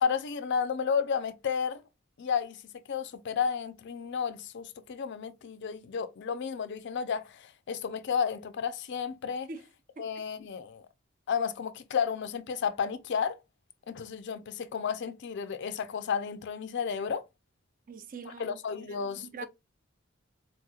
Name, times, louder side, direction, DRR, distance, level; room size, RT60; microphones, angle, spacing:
voice 1, 0.0-1.8 2.2-2.6 2.9-9.5 10.0-10.9 11.3-13.4 13.9-17.2 18.4-19.3, left 6 dB, 55° left, 0.4 m, -32 dB
voice 2, 17.9-19.5, right 4 dB, 40° right, 0.4 m, -44 dB
4.0 x 2.9 x 2.2 m
head